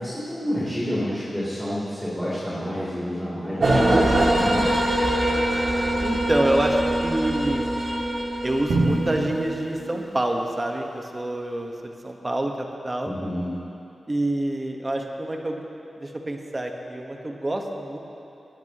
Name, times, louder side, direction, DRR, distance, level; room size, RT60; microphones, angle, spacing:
voice 1, 0.0-4.7 13.1-13.5, equal, ahead, -10 dB, 3.5 m, -29 dB
sound 1, 3.6-9.6, right 1 dB, 60° right, 2.5 m, -23 dB
voice 2, 6.0-7.7 8.4-11.7 12.0-13.1 14.1-15.6 16.0-18.0, right 1 dB, 30° right, 2 dB, 1.4 m, -27 dB
Drum, 8.7-10.7, right 2 dB, 85° right, 1.9 m, -27 dB
19.0 x 11.5 x 3.1 m, 2.8 s
cardioid pair, 50°, 0 cm